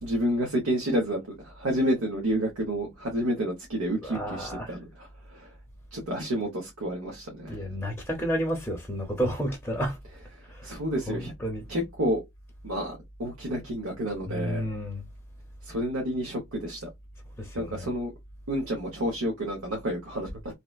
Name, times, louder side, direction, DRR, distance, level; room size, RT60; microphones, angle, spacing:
voice 1, 0.0-5.5 5.9-7.6 10.6-11.3 11.7-12.2 12.6-14.6 15.6-16.9 17.5-18.1 18.5-20.3, equal, 90° right, 0.8 m, -30 dB
voice 2, 4.0-4.7 7.5-10.0 10.5-10.7 11.1-11.6 14.3-15.0 17.4-17.9, equal, 10° left, 0.6 m, -31 dB
2.8 x 2.1 x 2.3 m
head